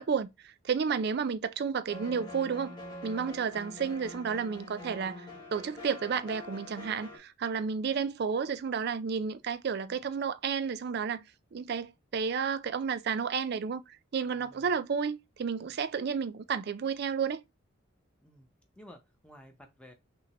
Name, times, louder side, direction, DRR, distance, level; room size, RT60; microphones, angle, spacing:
voice 1, 0.0-2.8 3.0-11.2 11.5-13.8 14.1-17.4, right 6 dB, 50° right, 0.3 m, -32 dB
sound 1, 1.9-7.2, left 2 dB, 20° left, 1.6 m, -45 dB
voice 2, 14.3-14.7 15.6-15.7 18.2-18.5 18.8-19.9, equal, 5° left, 0.6 m, -54 dB
5.8 x 2.1 x 2.9 m
head